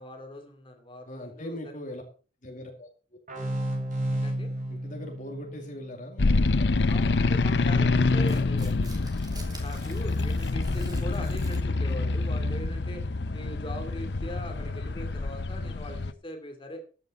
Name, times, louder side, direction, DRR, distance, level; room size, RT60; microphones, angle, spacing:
voice 1, 0.0-1.8 4.1-4.5 6.9-8.7 9.3-13.0 13.3-16.8, left 1 dB, 30° left, 4 dB, 2.6 m, -41 dB
voice 2, 1.1-2.0 2.4-2.9 4.7-6.8 8.3-8.9 10.9-11.2 14.4-14.7, left 1 dB, 45° left, 2 dB, 2.3 m, -41 dB
sound 1, 3.3-6.7, right 1 dB, 45° right, 5.6 m, -33 dB
sound 2, 6.2-16.1, left 3 dB, 70° left, 0.7 m, -26 dB
Tearing, 8.2-11.9, right 2 dB, 25° right, 3.2 m, -47 dB
14.0 x 9.4 x 4.1 m, 0.35 s
head